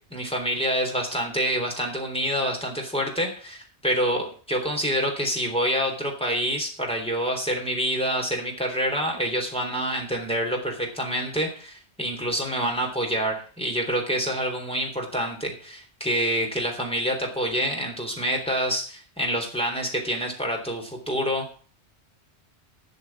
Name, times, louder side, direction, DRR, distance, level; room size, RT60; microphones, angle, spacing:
voice 1, 0.1-21.5, equal, 5° left, 0 dB, 3.4 m, -27 dB
12.5 x 6.5 x 7.2 m, 0.41 s
omnidirectional pair, 1.1 m